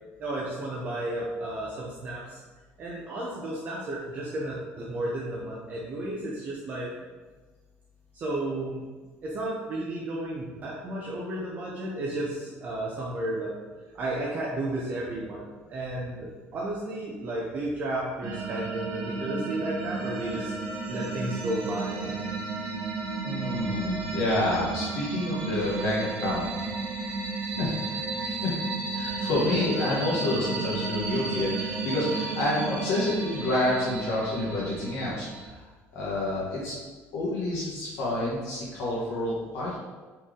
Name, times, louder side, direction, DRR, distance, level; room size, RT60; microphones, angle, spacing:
voice 1, 0.2-2.4 2.8-6.9 8.1-8.8 9.2-13.6 13.9-22.1, right 1 dB, 35° right, -4 dB, 0.6 m, -33 dB
sound 1, 18.2-35.5, right 4 dB, 60° right, 1.0 m, -33 dB
voice 2, 23.2-26.7 27.4-28.6 28.9-36.7 37.1-39.8, left 1 dB, 65° left, -7 dB, 1.1 m, -29 dB
4.3 x 3.2 x 3.6 m, 1.3 s
cardioid pair, 175°, 5 cm